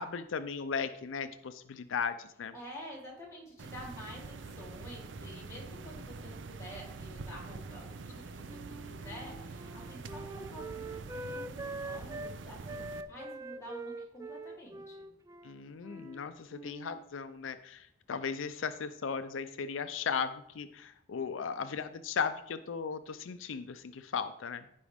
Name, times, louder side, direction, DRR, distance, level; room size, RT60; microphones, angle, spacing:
voice 1, 0.0-2.5 15.4-24.6, left 6 dB, 85° left, 11 dB, 0.5 m, -36 dB
voice 2, 2.5-15.0, equal, 15° left, -5 dB, 3.4 m, -49 dB
sound 1, 3.6-13.0, right 3 dB, 65° right, 0.5 m, -45 dB
Wind instrument woodwind instrument, 8.5-12.3 12.6-16.2 16.5-17.0, right 2 dB, 15° right, 0.3 m, -44 dB
15.0 x 5.1 x 3.5 m, 0.78 s
head